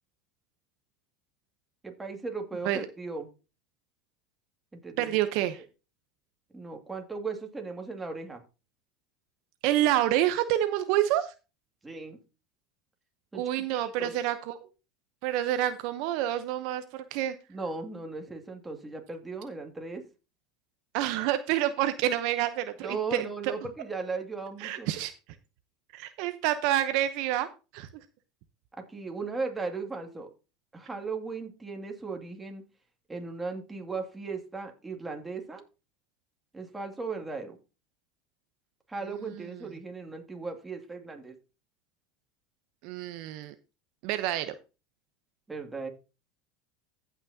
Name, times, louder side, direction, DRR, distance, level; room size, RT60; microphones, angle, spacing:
voice 1, 1.8-3.3 4.7-5.2 6.5-8.4 11.8-12.2 13.3-13.4 13.7-14.1 17.5-20.1 22.8-24.9 28.7-30.3 30.7-32.6 33.1-35.6 36.5-37.6 38.9-41.4 45.5-45.9, right 4 dB, 10° right, 3 dB, 2.3 m, -37 dB
voice 2, 5.0-5.6 9.6-11.3 13.3-14.5 15.2-17.3 20.9-23.5 24.6-25.1 25.9-27.5 27.7-27.9 42.8-43.5 44.0-44.5, right 13 dB, 65° right, 10 dB, 0.8 m, -28 dB
15.0 x 6.0 x 2.8 m, 0.31 s
supercardioid pair, 105°, 0 cm